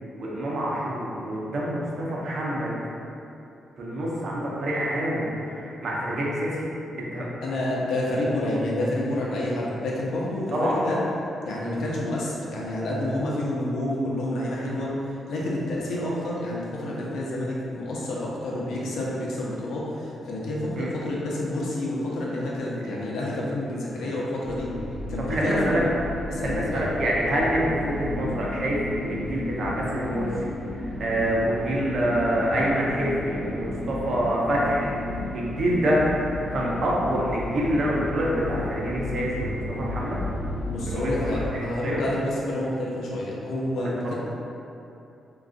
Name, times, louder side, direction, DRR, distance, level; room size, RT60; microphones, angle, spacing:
voice 1, 0.2-2.8 3.8-6.7 7.0-7.3 10.5-10.8 20.8-20.9 25.3-25.8 26.4-34.9 35.3-36.1 36.5-40.2 40.8-42.0, right 1 dB, 55° right, -5 dB, 0.6 m, -26 dB
voice 2, 7.4-11.0 11.4-14.9 15.3-24.7 25.1-25.8 26.3-26.8 40.7-44.1, left 1 dB, 90° left, -5 dB, 0.6 m, -29 dB
sound 1, 24.4-41.5, left 1 dB, 20° left, 0.3 m, -33 dB
3.7 x 2.3 x 2.5 m, 2.8 s
cardioid pair, 140°, 0 cm